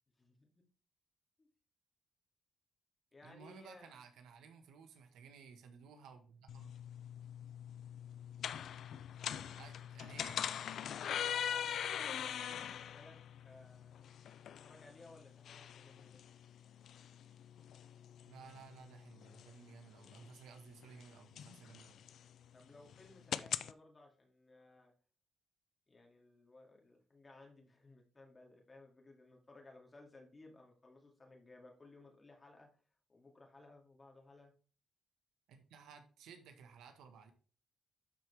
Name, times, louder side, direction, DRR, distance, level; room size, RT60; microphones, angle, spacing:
voice 1, 0.2-0.6 1.4-1.5 3.1-3.9 10.8-13.2 13.4-14.2 14.6-16.4 22.5-24.9 25.9-32.8 33.1-34.5, left 2 dB, 25° left, 0 dB, 2.4 m, -60 dB
voice 2, 3.2-6.7 9.6-10.4 18.2-22.0 35.5-37.3, right 6 dB, 85° right, 7 dB, 1.3 m, -56 dB
sound 1, 6.5-23.7, left 9 dB, 65° left, 0.4 m, -43 dB
12.0 x 4.7 x 3.4 m, 0.38 s
cardioid pair, 90°, 0 cm